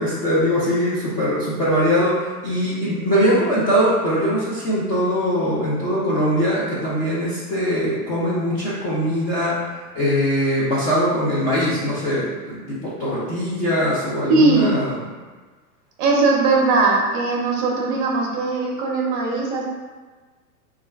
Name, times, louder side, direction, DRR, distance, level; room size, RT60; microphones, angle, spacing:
voice 1, 0.0-9.6 9.9-15.0, equal, 20° left, -9 dB, 0.3 m, -21 dB
voice 2, 14.3-14.8 16.0-19.6, right 3 dB, 35° right, -1 dB, 0.7 m, -19 dB
3.1 x 2.3 x 3.3 m, 1.3 s
hypercardioid pair, 120°, 46 cm